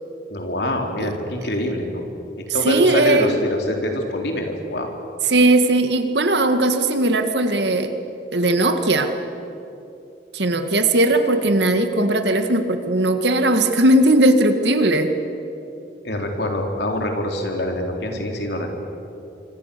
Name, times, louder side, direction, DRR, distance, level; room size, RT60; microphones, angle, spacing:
voice 1, 0.3-2.1 2.5-4.9 16.0-18.7, left 1 dB, 70° left, 2 dB, 3.6 m, -25 dB
voice 2, 2.6-3.4 5.3-7.9 8.3-9.1 10.3-15.1, right 1 dB, 75° right, 7 dB, 2.0 m, -18 dB
25.5 x 25.5 x 7.0 m, 2.8 s
head